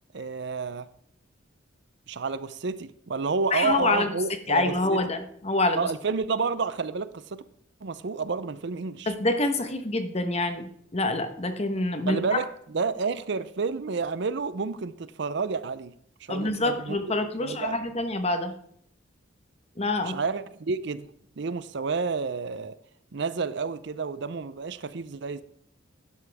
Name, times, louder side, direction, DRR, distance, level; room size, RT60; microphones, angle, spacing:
voice 1, 0.1-0.9 2.1-5.0 5.8-7.4 7.8-9.1 12.1-12.5 12.7-15.9 16.2-17.0 17.4-17.8 20.0-21.1 21.4-22.7 23.1-25.4, right 4 dB, 65° right, 0.6 m, -30 dB
voice 2, 3.5-4.1 4.5-5.8 9.1-12.2 16.3-18.5 19.8-20.2, left 2 dB, 35° left, 1.1 m, -26 dB
12.0 x 10.5 x 3.5 m
head